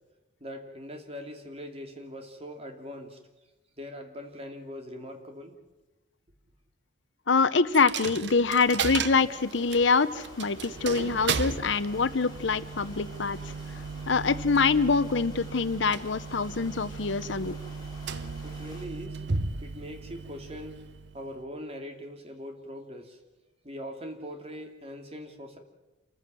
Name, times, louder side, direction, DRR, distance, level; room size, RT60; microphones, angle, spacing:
voice 1, 0.4-3.2 3.8-5.6 18.4-19.3 19.6-20.8 21.1-23.2 23.6-25.6, equal, 30° right, 4 dB, 2.6 m, -41 dB
voice 2, 7.3-13.4 14.1-17.5, left 4 dB, 65° left, 14 dB, 0.8 m, -25 dB
Coin (dropping), 7.7-21.5, right 5 dB, 60° right, 0.8 m, -36 dB
sound 1, 8.5-18.9, left 2 dB, 20° left, 4.9 m, -50 dB
27.5 x 14.5 x 7.6 m, 1.0 s
head